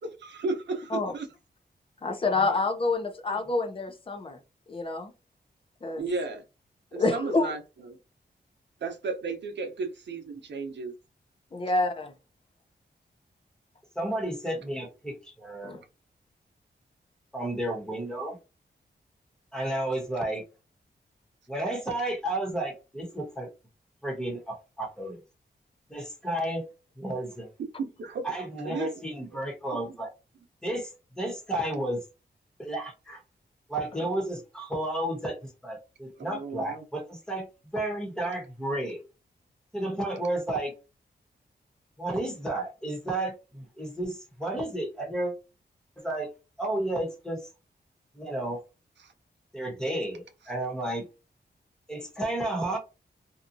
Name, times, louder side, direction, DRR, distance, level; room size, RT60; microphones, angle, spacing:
voice 1, 0.0-1.3 6.0-6.4 6.9-8.0 8.8-10.9 27.8-28.9 36.3-36.8 49.0-49.1, right 4 dB, 90° right, 0.7 m, -34 dB
voice 2, 2.0-4.4 4.7-5.1 5.8-6.1 7.0-7.5 11.5-12.1 15.6-15.8 34.0-34.1, left 3 dB, 30° left, 0.6 m, -27 dB
voice 3, 13.9-15.7 17.3-18.4 19.5-20.4 21.5-23.5 24.0-25.2 25.9-26.7 27.0-27.5 28.2-30.1 30.6-30.9 31.1-32.0 32.6-33.2 33.7-39.0 39.7-40.7 42.0-45.3 46.0-46.3 46.6-47.5 48.1-48.6 49.5-51.0 51.9-52.8, right 1 dB, 5° left, 1.1 m, -32 dB
2.8 x 2.3 x 2.5 m
wide cardioid pair, 110°, 18 cm